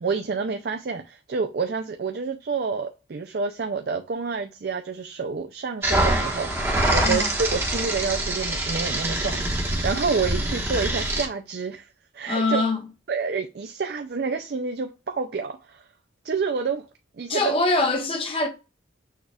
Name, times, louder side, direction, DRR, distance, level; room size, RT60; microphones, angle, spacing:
voice 1, 0.0-6.6 6.9-9.4 9.8-11.9 12.1-12.6 13.1-15.8 16.2-16.9 17.2-17.5, right 4 dB, 55° right, 0.4 m, -28 dB
sound 1, 5.8-11.3, right 1 dB, 15° right, 1.0 m, -25 dB
voice 2, 7.0-7.3 12.3-12.8 17.3-18.5, left 2 dB, 30° left, 1.0 m, -23 dB
6.4 x 2.4 x 3.4 m
head